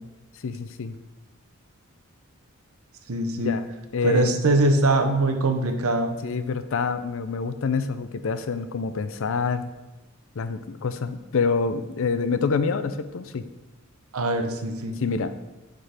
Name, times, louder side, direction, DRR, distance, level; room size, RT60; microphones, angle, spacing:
voice 1, 0.4-0.9 3.4-3.6 3.9-4.3 6.2-9.7 10.4-13.4 15.0-15.3, left 4 dB, 65° left, 11 dB, 0.5 m, -26 dB
voice 2, 3.1-3.6 4.0-6.2 14.1-15.0, right 2 dB, 90° right, 6 dB, 0.8 m, -22 dB
7.9 x 3.9 x 4.9 m, 1.1 s
head